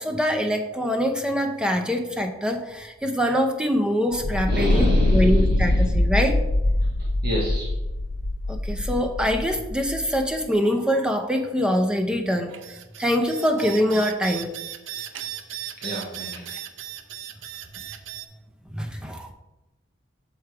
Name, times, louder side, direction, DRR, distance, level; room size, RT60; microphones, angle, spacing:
voice 1, 0.0-6.4 8.5-12.5 13.0-14.5 18.8-19.3, equal, 5° right, 4 dB, 0.6 m, -24 dB
sound 1, 4.1-10.2, left 1 dB, 50° left, 0.5 m, -23 dB
voice 2, 4.4-6.0 7.2-7.7 15.8-16.5, equal, 55° right, -4 dB, 1.2 m, -29 dB
sound 2, 12.5-18.3, right 12 dB, 80° right, 0.5 m, -36 dB
6.2 x 4.8 x 4.6 m, 1.0 s
head